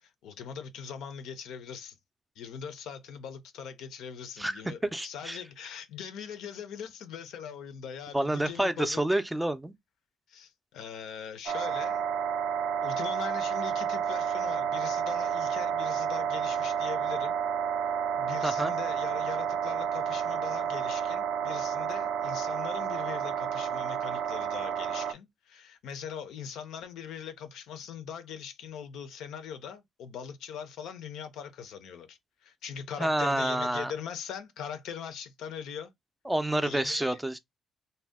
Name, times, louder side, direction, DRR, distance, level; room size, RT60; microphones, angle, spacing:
voice 1, 0.0-2.0 2.4-9.1 10.3-12.0 12.8-17.4 18.1-35.9 36.6-37.2, left 7 dB, 85° left, 0.5 m, -41 dB
voice 2, 4.4-5.4 8.1-9.7 18.4-18.7 33.0-33.9 36.3-37.4, right 1 dB, 10° right, 0.4 m, -28 dB
sound 1, 11.5-25.1, right 7 dB, 85° right, 0.4 m, -30 dB
2.6 x 2.1 x 3.4 m
cardioid pair, 90°, 0 cm